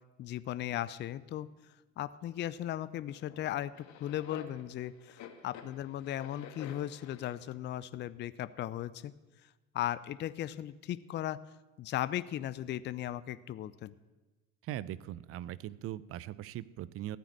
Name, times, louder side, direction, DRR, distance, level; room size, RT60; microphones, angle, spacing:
voice 1, 0.2-1.5 2.0-9.1 9.7-11.4 11.8-13.9, left 12 dB, 30° left, 16 dB, 0.5 m, -37 dB
sound 1, 2.5-2.6 3.1-7.4, left 8 dB, 50° left, 1.7 m, -50 dB
voice 2, 14.6-17.2, right 13 dB, 35° right, 19 dB, 0.6 m, -40 dB
14.5 x 8.9 x 6.5 m, 1.2 s
figure-of-eight pair, 65°, 37 cm